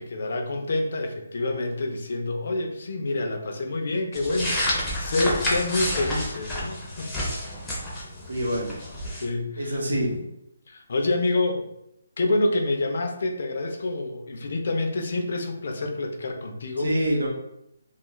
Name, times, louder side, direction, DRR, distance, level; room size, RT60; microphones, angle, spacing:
voice 1, 0.0-7.4 9.2-9.8 10.7-11.7 12.2-16.9, left 2 dB, 60° left, 3 dB, 0.5 m, -27 dB
sound 1, 4.1-9.2, left 1 dB, 5° left, 0.6 m, -30 dB
voice 2, 8.3-8.8 9.6-10.2 16.8-17.3, equal, 85° right, 0 dB, 0.8 m, -26 dB
2.3 x 2.3 x 3.0 m, 0.82 s
hypercardioid pair, 165°, 0 cm